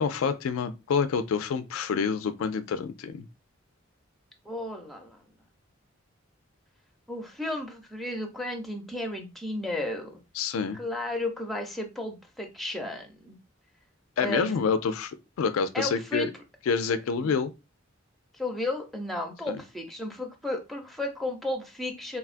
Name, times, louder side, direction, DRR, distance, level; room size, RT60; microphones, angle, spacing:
voice 1, 0.0-3.3 10.4-10.8 14.2-16.3 16.7-17.5 19.5-19.6, left 5 dB, 90° left, 0.3 m, -27 dB
voice 2, 4.4-5.2 7.1-10.2 10.7-13.4 14.2-14.5 15.7-16.3 17.2-17.3 18.3-22.2, left 1 dB, ahead, 0.5 m, -33 dB
3.4 x 2.2 x 2.4 m
head